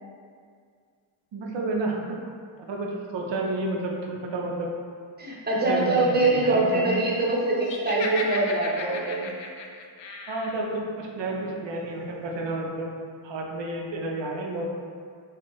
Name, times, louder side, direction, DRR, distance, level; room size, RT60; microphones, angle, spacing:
voice 1, 1.3-2.2 2.6-4.7 5.6-6.9 10.3-12.9 13.2-14.7, right 2 dB, 65° right, -1 dB, 0.6 m, -30 dB
voice 2, 5.2-9.3, right 2 dB, 20° right, -5 dB, 0.7 m, -24 dB
Laughter, 7.6-10.7, left 3 dB, 65° left, 0.5 m, -35 dB
4.4 x 2.2 x 3.0 m, 2.1 s
wide cardioid pair, 85°, 48 cm